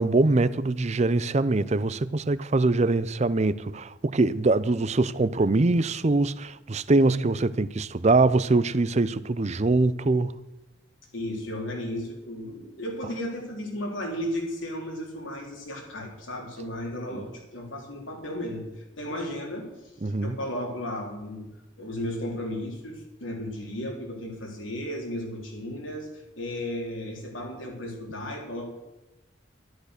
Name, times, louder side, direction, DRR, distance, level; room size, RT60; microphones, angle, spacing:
voice 1, 0.0-10.3 17.1-17.2 20.0-20.4, right 2 dB, 35° right, 0.5 m, -23 dB
voice 2, 11.1-18.7 19.0-19.7 20.2-21.5 21.8-28.7, left 1 dB, 80° left, 3.8 m, -34 dB
12.5 x 12.0 x 6.5 m
head